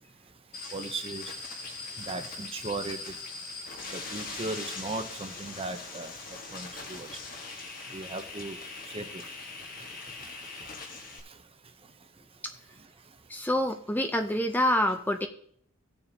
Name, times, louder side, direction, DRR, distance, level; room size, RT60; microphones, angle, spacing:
sound 1, 0.5-11.2, left 3 dB, 45° left, 1.4 m, -41 dB
voice 1, 0.7-1.3 2.0-3.1 3.9-6.1 6.5-7.1 7.9-8.6 8.9-9.2 10.2-10.3 11.3-11.4, right 3 dB, 25° right, 8 dB, 0.7 m, -37 dB
voice 2, 13.3-15.3, left 1 dB, 10° left, 6 dB, 0.5 m, -26 dB
16.0 x 6.9 x 2.8 m, 0.63 s
head